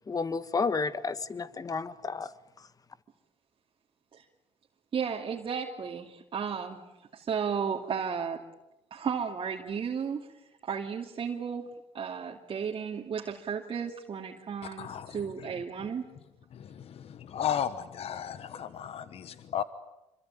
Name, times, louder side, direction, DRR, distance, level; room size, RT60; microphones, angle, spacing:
voice 1, 0.1-2.3, left 4 dB, 30° left, 14 dB, 1.5 m, -31 dB
voice 2, 4.9-6.8 7.1-8.4 8.9-10.2 10.6-11.6 11.9-14.9 15.1-16.0, right 6 dB, 45° right, 0 dB, 2.6 m, -33 dB
voice 3, 14.6-15.5 16.5-19.6, left 9 dB, 55° left, 13 dB, 1.2 m, -35 dB
26.5 x 24.0 x 9.1 m, 0.96 s
cardioid pair, 85°, 12 cm